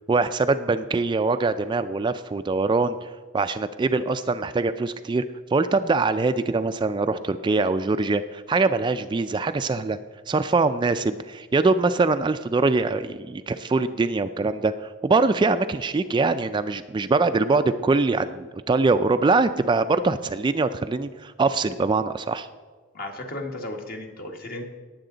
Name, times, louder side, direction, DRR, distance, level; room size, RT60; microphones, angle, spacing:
voice 1, 0.1-5.2 5.5-10.0 10.3-22.5, right 3 dB, 25° right, 10 dB, 0.3 m, -23 dB
voice 2, 22.9-24.6, left 1 dB, 50° left, 2 dB, 1.6 m, -34 dB
19.0 x 7.7 x 3.9 m, 1.4 s
head